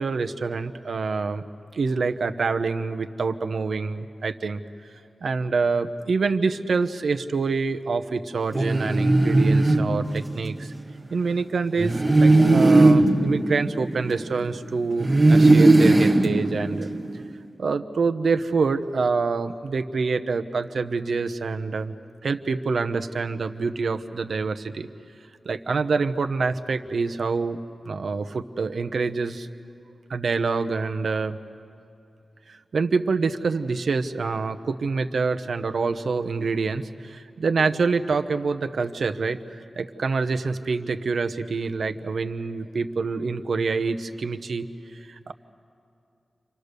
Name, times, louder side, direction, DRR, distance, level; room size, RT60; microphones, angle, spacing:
voice 1, 0.0-1.4 1.7-4.6 5.2-10.7 11.1-16.9 17.6-21.9 22.2-24.9 25.4-27.6 27.8-29.5 30.1-31.4 32.5-39.4 39.8-45.3, right 4 dB, 65° right, 7 dB, 0.9 m, -26 dB
sound 1, 8.5-10.6 11.8-14.5 15.0-17.2, right 2 dB, 20° right, 1.1 m, -18 dB
30.0 x 26.0 x 6.8 m, 2.6 s
wide cardioid pair, 140°, 0 cm